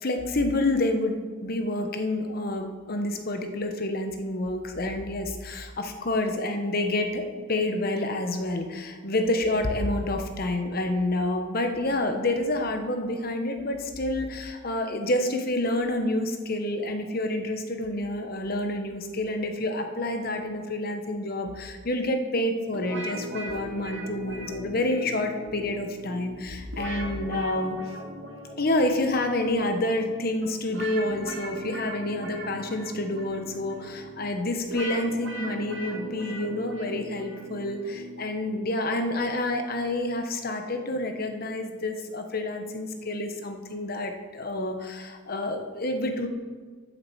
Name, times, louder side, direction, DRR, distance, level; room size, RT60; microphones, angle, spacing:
voice 1, 0.0-7.2 7.5-27.8 28.6-46.3, left 1 dB, 55° left, 5 dB, 1.2 m, -28 dB
sound 1, 22.7-38.7, right 1 dB, 85° right, 1.9 m, -40 dB
8.7 x 7.7 x 7.1 m, 1.5 s
head